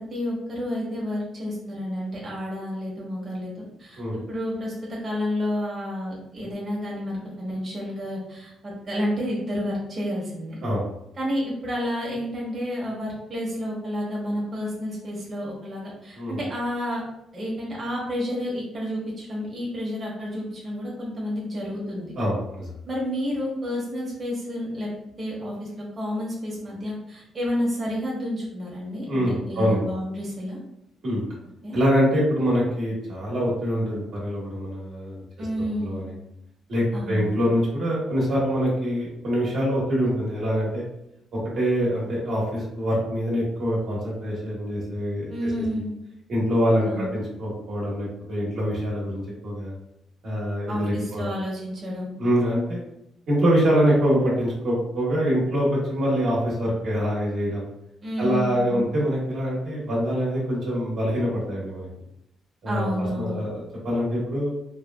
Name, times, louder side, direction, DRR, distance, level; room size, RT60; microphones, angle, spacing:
voice 1, 0.0-4.0 4.3-10.6 11.2-17.0 17.3-22.1 22.9-24.9 25.2-30.6 31.6-31.8 35.4-36.1 36.9-37.4 45.3-45.9 46.9-47.2 50.7-52.1 58.0-58.9 62.6-63.4, equal, 35° right, -5 dB, 1.0 m, -30 dB
voice 2, 22.2-22.7 29.1-29.9 31.0-31.2 31.7-35.5 35.8-36.1 36.7-40.8 41.3-45.3 46.3-49.7 50.2-51.3 52.2-52.8 53.3-57.7 58.2-61.9 62.6-64.5, equal, 65° right, -6 dB, 1.2 m, -24 dB
3.2 x 2.3 x 2.3 m, 0.84 s
cardioid pair, 90°, 0 cm